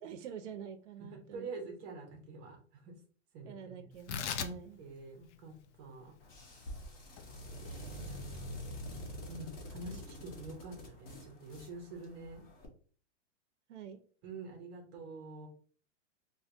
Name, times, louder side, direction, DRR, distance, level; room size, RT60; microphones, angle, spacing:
voice 1, 0.0-1.5 3.5-4.8 13.7-14.0, right 8 dB, 70° right, 6 dB, 0.6 m, -47 dB
voice 2, 1.0-2.9 3.3-3.9 4.4-6.1 6.4-6.6 7.3-7.4 7.6-8.5 9.3-12.4 14.2-15.5, right 3 dB, 20° right, 1 dB, 0.6 m, -47 dB
Tearing, 3.9-10.6, left 7 dB, 70° left, 0.5 m, -45 dB
sound 1, 6.2-12.7, equal, 50° left, 1.1 m, -46 dB
4.3 x 2.2 x 2.5 m, 0.43 s
supercardioid pair, 170°, 37 cm